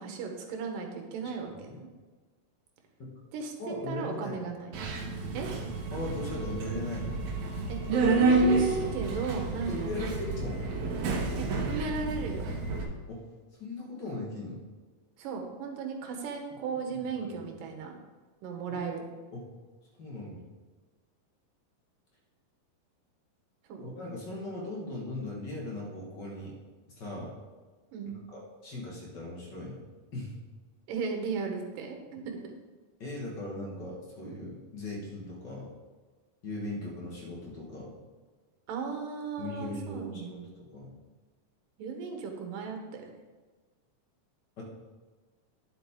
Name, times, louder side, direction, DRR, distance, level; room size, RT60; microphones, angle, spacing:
voice 1, 0.0-1.9 3.3-4.8 5.3-5.5 7.7-7.8 8.1-10.1 11.4-12.6 15.2-18.0 18.4-19.0 23.7-23.9 27.9-28.2 30.9-32.4 38.7-40.5 41.8-43.1, right 5 dB, 80° right, 3 dB, 2.8 m, -36 dB
voice 2, 3.6-4.4 5.9-7.2 9.7-10.6 13.1-13.3 13.6-14.6 16.7-16.8 17.2-17.6 18.7-18.8 19.3-19.4 20.0-20.4 23.8-26.6 26.9-27.4 28.3-29.9 30.1-30.3 33.0-35.7 36.4-37.9 39.4-40.9 44.6-44.7, left 2 dB, 40° left, -3 dB, 1.8 m, -38 dB
Subway metro underground, 4.7-12.8, right 3 dB, 65° right, 2.3 m, -29 dB
10.0 x 7.8 x 3.7 m, 1.4 s
omnidirectional pair, 3.9 m